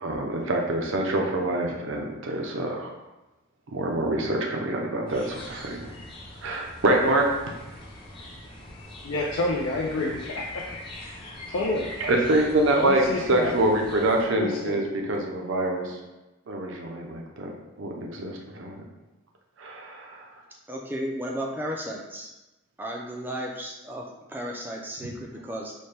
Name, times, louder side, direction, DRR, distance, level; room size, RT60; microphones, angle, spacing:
voice 1, 0.0-2.9 3.7-5.9 6.4-7.3 12.0-16.0 16.5-17.5 17.8-18.8 19.6-20.2, right 1 dB, 70° right, 1 dB, 0.6 m, -25 dB
sound 1, 5.1-14.3, left 1 dB, 25° left, 0.6 m, -42 dB
voice 2, 9.0-10.8 11.1-11.9 12.8-13.5 13.9-14.0 14.3-14.9, left 2 dB, 75° left, -2 dB, 0.4 m, -29 dB
voice 3, 20.7-22.3 22.8-25.7, equal, 10° right, -1 dB, 0.3 m, -34 dB
4.1 x 2.2 x 3.3 m, 1.0 s
head